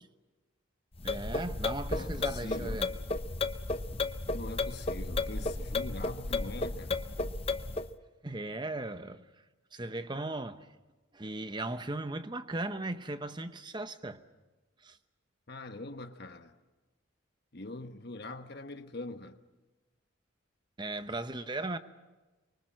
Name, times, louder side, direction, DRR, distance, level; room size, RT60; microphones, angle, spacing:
sound 1, 1.0-7.9, left 3 dB, 25° left, 0.7 m, -33 dB
voice 1, 1.0-2.9 6.9-7.0 8.2-9.3 9.7-10.7 11.1-14.2 14.8-15.0 20.8-21.8, right 2 dB, 20° right, 0.9 m, -37 dB
voice 2, 1.9-2.8 4.3-7.0 15.5-16.5 17.5-19.4, left 2 dB, 50° left, 1.3 m, -43 dB
25.0 x 24.0 x 6.3 m
head